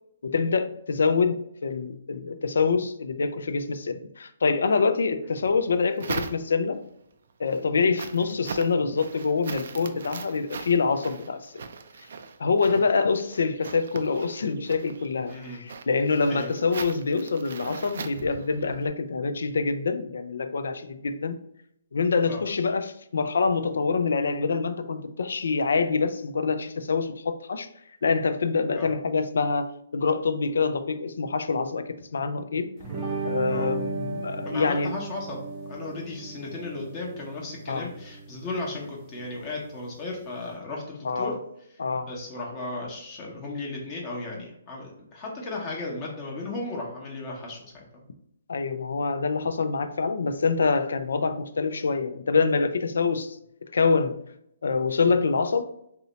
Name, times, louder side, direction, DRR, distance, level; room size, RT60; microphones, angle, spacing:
voice 1, 0.2-6.8 7.4-11.6 12.4-21.4 21.9-27.7 28.0-31.8 32.1-32.7 33.2-34.9 37.7-37.9 41.0-41.4 41.8-42.1 48.5-53.4 53.7-54.2 54.6-55.7, left 4 dB, 75° left, 0.3 m, -25 dB
sound 1, 5.4-6.8 7.3-18.9, right 5 dB, 65° right, 0.3 m, -40 dB
voice 2, 15.3-15.6 16.3-16.5 22.3-22.4 28.8-28.9 33.5-33.7 34.4-35.4 35.7-41.3 42.1-47.8, left 2 dB, 30° left, 0.8 m, -35 dB
sound 2, 32.8-40.5, right 4 dB, 30° right, 0.6 m, -36 dB
2.7 x 2.1 x 3.9 m
hypercardioid pair, 145°, 0 cm